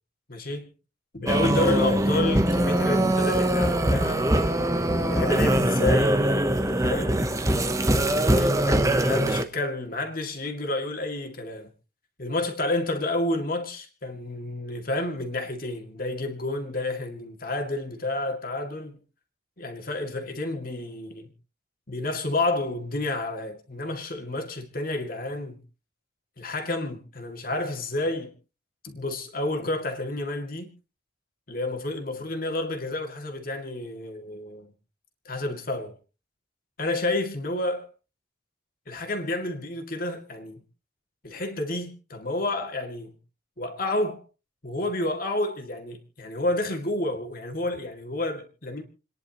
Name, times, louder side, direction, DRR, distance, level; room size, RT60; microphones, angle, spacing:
voice 1, 0.3-0.7 1.1-4.3 4.8-6.2 6.7-7.2 8.3-11.7 12.2-19.0 19.6-21.3 21.9-25.6 26.4-28.3 28.8-30.7 31.5-34.7 35.3-36.0 36.8-37.9 38.9-40.6 41.2-43.2 43.6-44.2 44.6-48.8, left 2 dB, 45° left, 2.3 m, -30 dB
sound 1, 1.3-9.4, right 1 dB, 15° right, 0.9 m, -22 dB
29.5 x 10.5 x 3.0 m
head